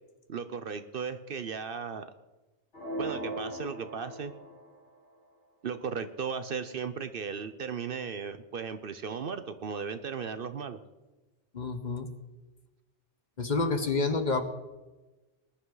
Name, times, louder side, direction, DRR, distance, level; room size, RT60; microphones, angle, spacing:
voice 1, 0.3-2.1 3.0-4.3 5.6-10.8, right 6 dB, 55° right, 11 dB, 0.8 m, -36 dB
sound 1, 2.7-4.8, right 1 dB, 80° left, 4.3 m, -38 dB
voice 2, 11.5-12.1 13.4-14.4, left 3 dB, 40° left, 8 dB, 1.1 m, -28 dB
20.5 x 10.5 x 3.9 m, 1.1 s
omnidirectional pair, 1.2 m